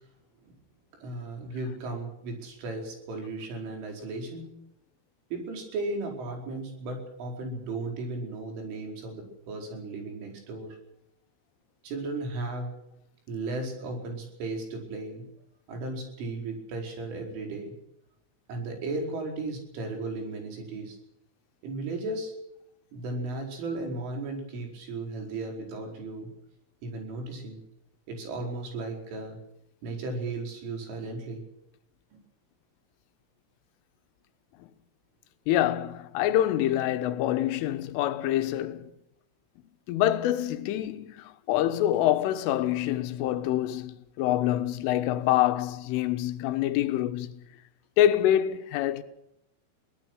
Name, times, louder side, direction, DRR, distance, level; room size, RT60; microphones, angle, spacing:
voice 1, 0.9-4.5 5.3-10.8 11.8-12.7 13.3-15.3 15.7-17.8 18.5-21.0 21.6-22.3 22.9-26.3 26.8-27.6 28.1-29.4 29.8-31.4 32.1-32.2 44.9-45.2, right 2 dB, 80° right, 7.2 m, -35 dB
voice 2, 35.5-38.9 39.9-47.3 48.0-49.0, left 12 dB, 85° left, 3.7 m, -26 dB
23.0 x 18.0 x 6.3 m
omnidirectional pair, 5.6 m